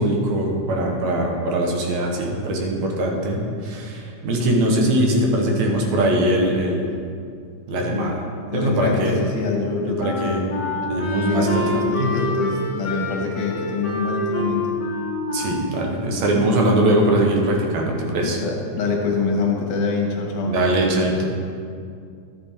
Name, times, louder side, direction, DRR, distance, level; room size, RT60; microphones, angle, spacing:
voice 1, 0.0-6.9 7.7-8.2 8.5-9.1 9.9-10.4 10.9-11.6 12.0-12.1 15.3-18.4 20.5-21.3, right 1 dB, 65° right, 0 dB, 2.3 m, -21 dB
voice 2, 7.8-8.2 8.5-10.4 11.3-14.8 18.2-20.5, left 4 dB, 85° left, 0 dB, 2.7 m, -25 dB
Wind instrument woodwind instrument, 9.5-16.8, left 2 dB, 35° left, 2.1 m, -28 dB
12.0 x 6.8 x 4.4 m, 2.3 s
omnidirectional pair, 3.6 m